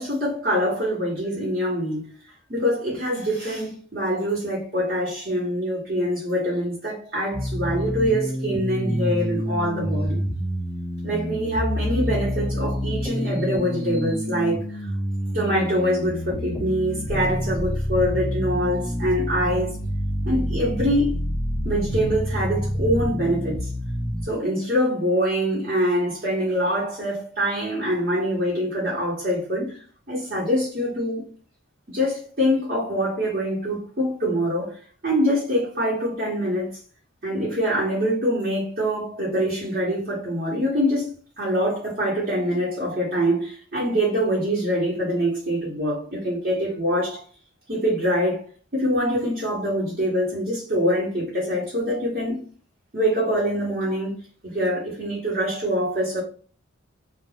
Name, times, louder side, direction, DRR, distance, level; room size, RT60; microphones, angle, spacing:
voice 1, 0.0-2.1 2.5-10.2 11.0-14.9 15.3-19.8 20.2-21.2 21.6-23.7 24.2-29.8 30.1-31.2 31.9-36.8 37.2-47.2 47.7-48.4 48.7-52.4 52.9-56.2, equal, 45° right, 0.9 m, -24 dB
sound 1, 7.3-24.3, equal, 10° left, 0.7 m, -28 dB
2.3 x 2.2 x 3.2 m
head